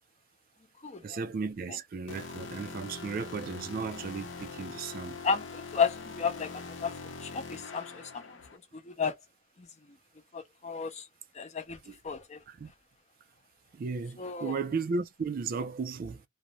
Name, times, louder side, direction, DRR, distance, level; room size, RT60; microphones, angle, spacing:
voice 1, 1.0-5.2 11.9-12.0 12.5-12.7 13.7-16.2, right 4 dB, 50° right, 0.3 m, -35 dB
sound 1, 2.1-8.6, left 4 dB, 70° left, 0.7 m, -43 dB
voice 2, 5.2-6.9 7.2-8.4 8.8-9.1 10.3-11.0 11.3-11.8 12.0-12.4 14.2-14.6, left 6 dB, 35° left, 0.6 m, -32 dB
2.4 x 2.0 x 2.8 m
head